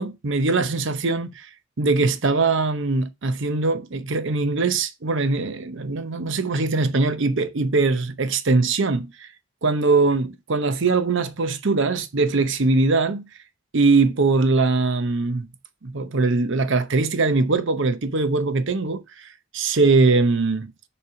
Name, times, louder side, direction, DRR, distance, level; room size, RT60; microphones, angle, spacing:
voice 1, 0.0-1.5 1.8-9.3 9.6-13.3 13.7-15.5 15.8-20.7, right 3 dB, 65° right, 0.8 m, -21 dB
6.9 x 3.4 x 5.8 m
head